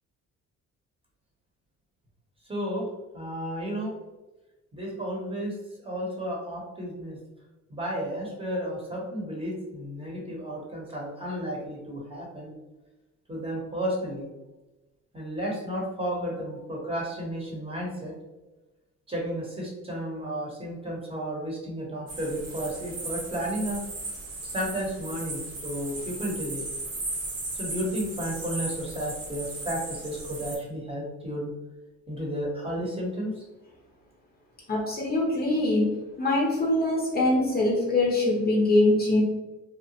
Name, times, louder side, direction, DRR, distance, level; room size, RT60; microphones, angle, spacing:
voice 1, 2.5-2.9 3.1-3.9 4.7-5.6 5.8-7.2 7.7-12.5 13.3-14.3 15.1-18.1 19.1-23.8 24.4-26.6 27.5-31.5 32.1-33.4, equal, 20° right, -3 dB, 0.9 m, -32 dB
sound 1, 22.1-30.6, right 2 dB, 50° right, 0.9 m, -36 dB
voice 2, 34.7-35.9 36.2-39.2, left 2 dB, 30° left, -2 dB, 0.6 m, -23 dB
2.8 x 2.0 x 2.8 m, 1.1 s
cardioid pair, 90°, 30 cm